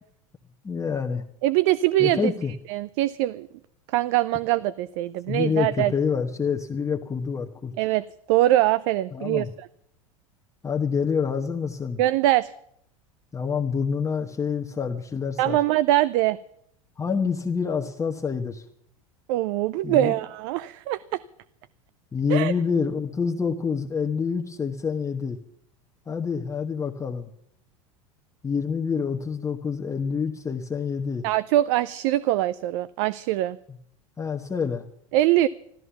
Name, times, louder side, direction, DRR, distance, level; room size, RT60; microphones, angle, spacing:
voice 1, 0.6-1.2 2.0-2.5 5.3-7.7 9.1-9.5 10.6-12.0 13.3-15.6 17.0-18.7 19.8-20.1 22.1-25.4 26.1-27.3 28.4-31.3 33.7-33.8 34.2-34.8, left 6 dB, 15° left, 0 dB, 1.1 m, -27 dB
voice 2, 1.4-2.3 2.7-3.5 3.9-5.9 7.8-9.5 12.0-12.5 15.4-16.4 19.3-21.2 22.3-22.5 31.2-33.6 35.1-35.5, right 15 dB, 55° right, 16 dB, 0.5 m, -23 dB
14.0 x 13.0 x 7.0 m, 0.72 s
hypercardioid pair, 85°, 18 cm